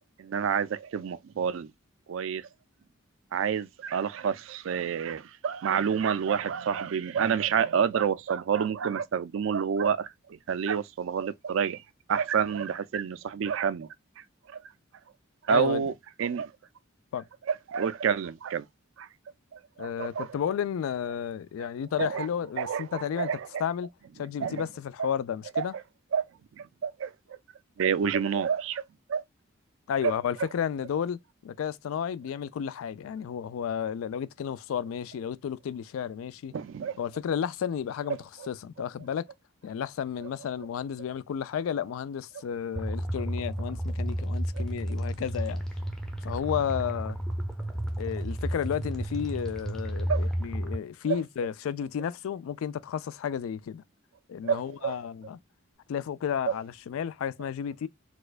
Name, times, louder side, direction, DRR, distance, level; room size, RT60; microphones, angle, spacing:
voice 1, 0.2-1.7 2.1-2.5 3.3-11.8 12.1-13.9 14.2-14.6 15.5-15.9 16.2-16.5 17.7-18.7 19.0-19.1 19.5-20.3 22.0-22.3 22.6-23.6 24.4-24.6 25.6-25.7 26.1-26.2 26.6-27.4 27.8-28.8 29.1-29.2 30.0-30.1 36.5-37.0 44.5-44.6 50.1-50.3 54.4-55.0 56.5-56.6, right 7 dB, 65° right, 0.4 m, -28 dB
voice 2, 15.5-15.9 17.1-17.3 19.8-23.3 23.6-23.9 24.2-25.7 29.9-36.5 37.0-39.3 39.6-45.6 46.2-47.2 48.0-53.8 54.3-55.4 55.9-57.9, left 8 dB, 80° left, 0.3 m, -32 dB
sound 1, 42.8-50.8, right 1 dB, 5° left, 0.6 m, -32 dB
4.2 x 2.2 x 2.4 m
head